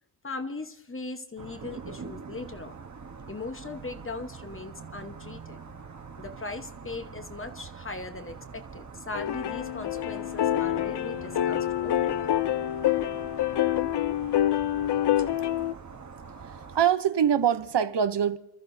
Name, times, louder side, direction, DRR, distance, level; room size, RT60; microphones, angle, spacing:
voice 1, 0.2-2.8 3.3-5.6 6.2-12.3, left 3 dB, 30° left, 1.0 m, -39 dB
sound 1, 1.4-16.8, right 5 dB, 40° right, 1.1 m, -44 dB
sound 2, 9.1-15.7, left 12 dB, 65° left, 0.5 m, -27 dB
voice 2, 16.5-18.4, right 9 dB, 70° right, 0.7 m, -24 dB
29.0 x 13.5 x 2.7 m
wide cardioid pair, 105°, 44 cm